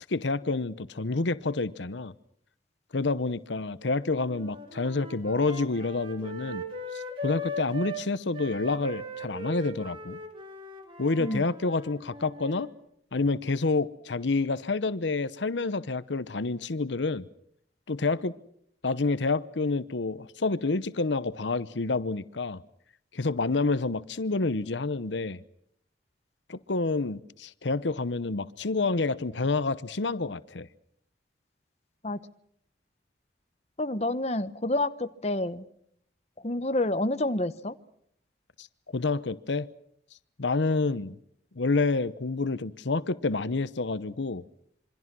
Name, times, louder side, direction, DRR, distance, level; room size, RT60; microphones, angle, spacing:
voice 1, 0.1-2.1 2.9-6.6 6.9-10.2 11.0-12.7 13.1-17.2 17.9-18.4 18.8-22.6 23.1-25.4 26.5-30.7 38.6-38.7 38.9-39.7 40.4-41.2 41.6-44.4, left 3 dB, 90° left, 0.9 m, -28 dB
sound 1, 4.2-8.0 8.3-12.7, equal, 30° right, 3.4 m, -39 dB
voice 2, 33.8-35.7 36.4-37.7, left 1 dB, 35° left, 1.0 m, -28 dB
27.0 x 24.0 x 6.1 m
head